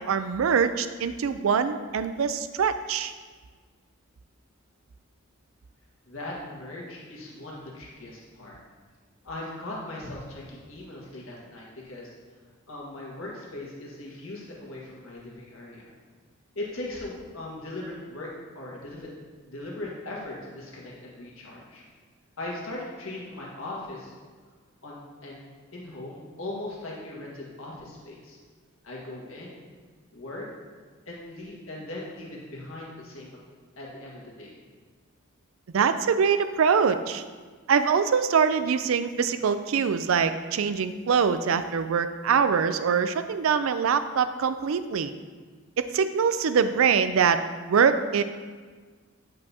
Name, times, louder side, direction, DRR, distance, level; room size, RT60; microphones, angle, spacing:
voice 1, 0.0-3.1 35.7-37.2 37.7-45.1 45.9-47.4 47.7-48.2, right 6 dB, 75° right, 11 dB, 0.4 m, -23 dB
voice 2, 6.0-8.6 9.2-12.1 12.7-15.9 16.5-18.3 18.5-19.1 19.4-21.8 22.4-24.1 24.8-25.0 25.2-28.4 28.8-29.6 30.1-30.5 31.1-34.5, left 2 dB, 75° left, -4 dB, 1.6 m, -39 dB
9.2 x 5.3 x 2.8 m, 1.5 s
head